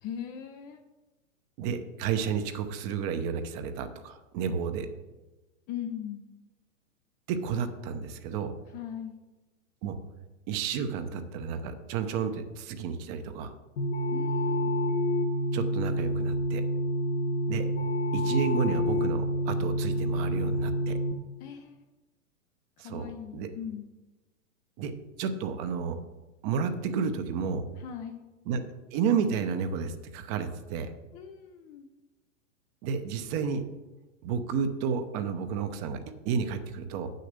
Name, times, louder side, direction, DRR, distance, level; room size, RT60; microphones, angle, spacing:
voice 1, 0.0-0.8 5.7-6.3 8.7-9.2 14.1-14.7 21.4-21.8 22.8-23.9 27.8-28.2 31.1-31.9, left 9 dB, 20° left, 5 dB, 0.5 m, -39 dB
voice 2, 1.6-4.9 7.3-8.5 9.8-10.0 10.5-13.5 15.5-16.6 17.5-17.7 18.1-21.0 22.8-23.5 24.8-24.9 25.2-26.0 26.4-27.6 28.5-30.9 32.8-33.7 34.2-36.0 36.2-37.1, right 6 dB, 35° right, 9 dB, 0.8 m, -31 dB
sound 1, 13.8-21.1, equal, 70° left, 1.3 m, -28 dB
7.6 x 6.6 x 6.6 m, 1.1 s
hypercardioid pair, 135°, 39 cm